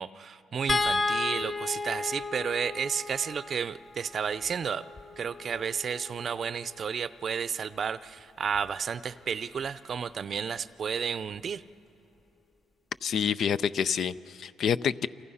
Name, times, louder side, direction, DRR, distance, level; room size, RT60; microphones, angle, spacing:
voice 1, 0.0-4.8 5.2-11.6, right 7 dB, 50° right, 15 dB, 0.6 m, -32 dB
sound 1, 0.7-7.0 8.5-8.7 9.1-9.2, left 3 dB, 25° left, 0.7 m, -34 dB
voice 2, 13.0-15.1, left 7 dB, 60° left, 15 dB, 0.5 m, -28 dB
30.0 x 25.0 x 5.6 m, 2.9 s
cardioid pair, 85°, 0 cm